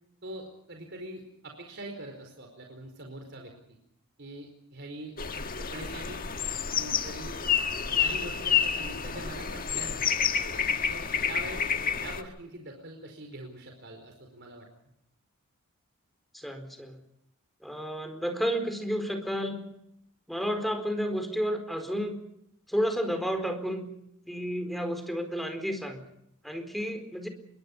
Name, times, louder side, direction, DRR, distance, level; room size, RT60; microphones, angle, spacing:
voice 1, 0.2-3.5 4.2-6.3 6.7-7.4 7.8-10.1 10.8-11.6 12.0-14.7, right 1 dB, 55° right, 3 dB, 4.8 m, -43 dB
sound 1, 5.2-12.2, left 7 dB, 40° left, 1.6 m, -29 dB
voice 2, 16.3-17.0 17.6-19.6 20.3-22.2 22.7-23.9 24.3-26.0 26.4-27.3, equal, ahead, 7 dB, 4.4 m, -31 dB
27.5 x 23.0 x 5.5 m, 0.76 s
head